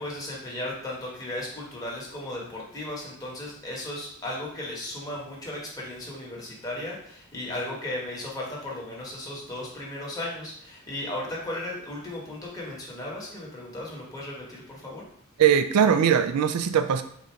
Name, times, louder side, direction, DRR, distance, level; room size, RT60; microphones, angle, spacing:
voice 1, 0.0-15.0, left 1 dB, 15° left, -4 dB, 1.2 m, -36 dB
voice 2, 15.4-17.0, right 8 dB, 85° right, 9 dB, 0.4 m, -20 dB
4.1 x 2.5 x 4.4 m, 0.65 s
head